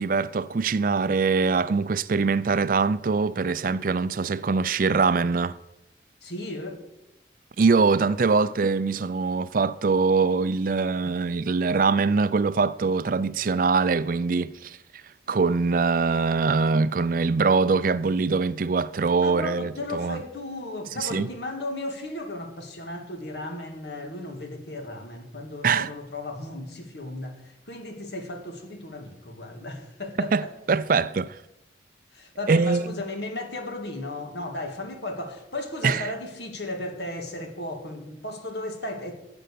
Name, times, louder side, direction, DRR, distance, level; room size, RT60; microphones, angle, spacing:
voice 1, 0.0-5.6 7.6-14.8 15.3-20.2 21.0-21.3 25.6-25.9 30.2-31.4 32.5-32.9 35.8-36.0, right 4 dB, 50° right, 0.4 m, -23 dB
voice 2, 6.2-6.8 19.2-30.5 32.1-39.1, left 1 dB, 65° left, 1.9 m, -35 dB
13.0 x 7.8 x 6.8 m
head